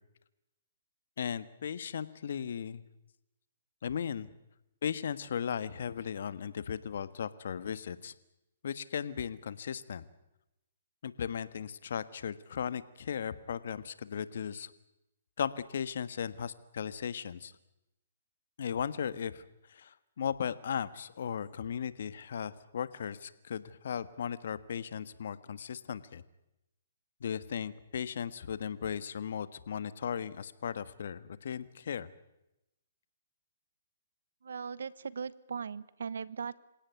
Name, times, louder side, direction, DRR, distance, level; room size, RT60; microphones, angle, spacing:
voice 1, 1.2-2.8 3.8-4.3 4.8-8.1 8.6-10.0 11.0-14.7 15.4-17.5 18.6-19.4 19.7-26.2 27.2-32.1, left 8 dB, 70° left, 15 dB, 1.5 m, -36 dB
voice 2, 34.4-36.6, right 6 dB, 80° right, 19 dB, 1.1 m, -39 dB
27.0 x 17.5 x 9.4 m, 0.89 s
hypercardioid pair, 145°, 0 cm